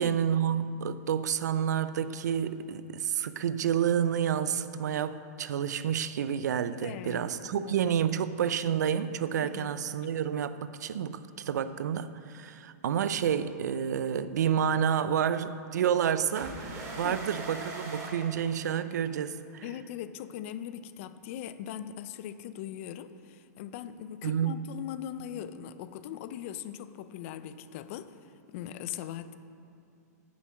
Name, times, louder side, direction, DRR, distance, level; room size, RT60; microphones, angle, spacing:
voice 1, 0.0-19.6 24.2-24.5, right 8 dB, 80° right, 13 dB, 0.5 m, -29 dB
voice 2, 6.8-7.2 7.5-7.9 9.4-9.7 17.0-17.2 19.6-28.1 28.5-29.4, left 10 dB, 50° left, 13 dB, 0.5 m, -40 dB
sound 1, 16.4-19.1, right 2 dB, 30° right, 2.1 m, -41 dB
9.2 x 7.1 x 6.2 m, 2.6 s
hypercardioid pair, 130°, 9 cm